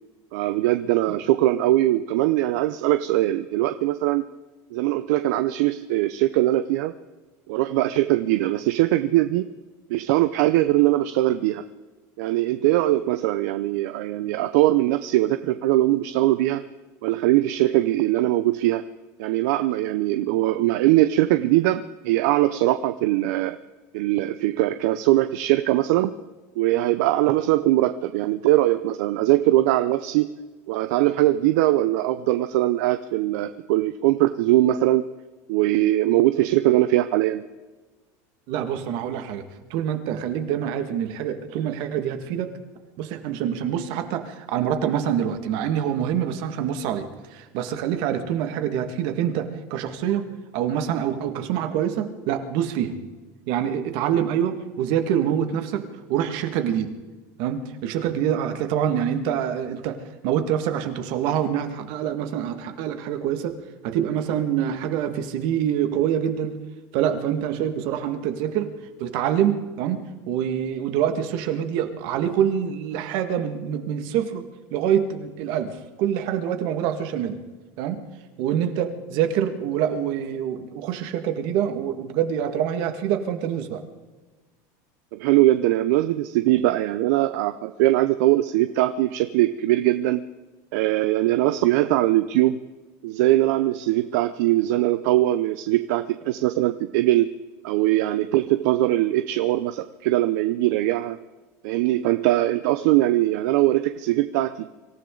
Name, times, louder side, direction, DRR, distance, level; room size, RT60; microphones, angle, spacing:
voice 1, 0.3-4.2 4.7-6.9 7.5-9.5 9.9-11.6 12.2-16.6 17.0-18.8 19.2-23.6 23.9-26.1 26.6-30.3 30.7-35.0 35.5-37.4 85.1-90.2 90.7-92.6 93.0-97.3 97.6-101.2 101.6-104.7, right 15 dB, 75° right, 11 dB, 0.7 m, -21 dB
voice 2, 38.5-39.5 39.7-42.5 43.0-50.3 50.5-53.0 53.5-55.8 56.1-56.9 57.4-60.0 60.2-63.5 63.8-66.6 66.9-68.7 69.0-70.0 70.3-74.4 74.7-75.7 76.0-77.4 77.8-78.0 78.4-83.8, right 9 dB, 60° right, 7 dB, 1.9 m, -25 dB
25.0 x 15.0 x 3.9 m, 1.2 s
cardioid pair, 150°, 9 cm